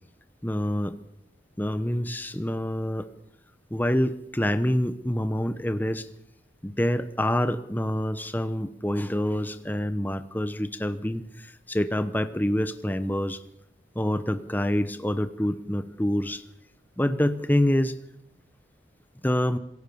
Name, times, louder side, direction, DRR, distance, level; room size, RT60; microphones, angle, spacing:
voice 1, 0.4-1.0 1.6-3.1 3.7-6.1 6.6-13.4 13.9-16.4 17.0-18.0 19.2-19.6, left 1 dB, 10° left, 11 dB, 0.9 m, -26 dB
27.0 x 16.5 x 7.0 m, 0.79 s
head